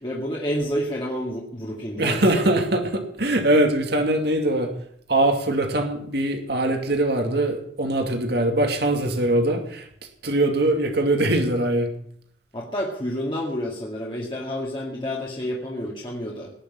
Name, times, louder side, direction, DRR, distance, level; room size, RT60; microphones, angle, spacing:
voice 1, 0.0-2.5 12.5-16.5, equal, 25° left, -4 dB, 2.3 m, -29 dB
voice 2, 2.0-4.7 5.1-9.9 10.2-11.9, right 1 dB, 60° right, 4 dB, 2.5 m, -22 dB
19.0 x 7.0 x 9.8 m, 0.65 s
head